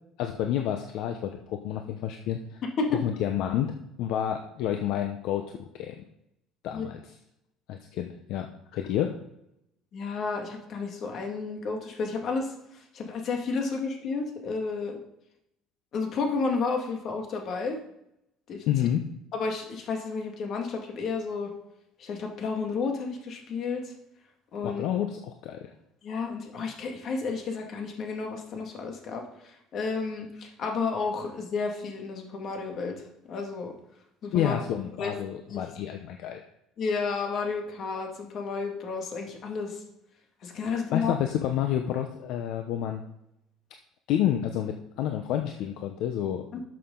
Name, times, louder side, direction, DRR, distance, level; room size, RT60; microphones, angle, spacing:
voice 1, 0.2-2.6 3.0-6.0 6.6-7.0 7.7-8.5 8.7-9.1 18.7-19.0 24.6-25.7 34.3-36.4 40.7-43.0 44.1-46.4, left 10 dB, 65° left, 5 dB, 0.8 m, -29 dB
voice 2, 9.9-12.5 12.9-15.0 15.9-17.8 18.5-18.6 19.3-21.5 22.0-23.9 24.5-24.8 26.0-29.2 29.7-33.7 34.2-34.6 35.0-35.1 35.5-35.6 36.8-39.8 40.4-41.1 46.5-46.6, left 4 dB, 45° left, 3 dB, 2.0 m, -31 dB
12.0 x 6.7 x 3.9 m, 0.81 s
cardioid pair, 150°, 0 cm